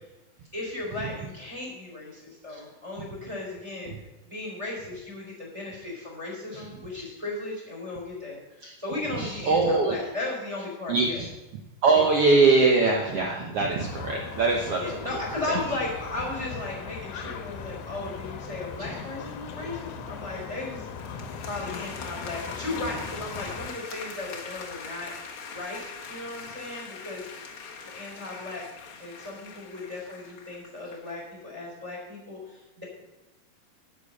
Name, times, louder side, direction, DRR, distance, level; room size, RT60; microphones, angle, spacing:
voice 1, 0.5-8.4 8.8-11.2 11.9-12.0 13.3-13.6 14.8-20.9 21.4-25.1 25.5-27.3 27.8-28.6 29.0-32.8, left 2 dB, 10° right, -1 dB, 3.2 m, -36 dB
voice 2, 9.2-10.0 10.9-11.3 11.8-14.8, right 3 dB, 75° right, 1 dB, 1.3 m, -22 dB
sound 1, 13.8-23.7, left 5 dB, 85° left, 2.8 m, -38 dB
sound 2, 20.9-31.2, left 5 dB, 60° left, 1.4 m, -42 dB
11.0 x 7.7 x 5.4 m, 1.0 s
omnidirectional pair, 4.2 m